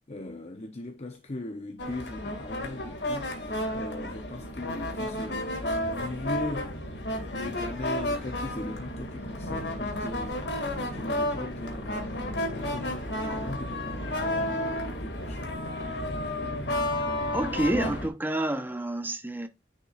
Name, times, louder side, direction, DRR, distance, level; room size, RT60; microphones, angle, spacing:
voice 1, 0.1-6.7 7.3-15.6, left 2 dB, 40° left, 0.8 m, -39 dB
sound 1, 1.8-18.1, left 1 dB, 65° left, 2.2 m, -32 dB
voice 2, 17.3-19.5, right 1 dB, 10° right, 1.0 m, -28 dB
9.8 x 5.3 x 2.4 m
head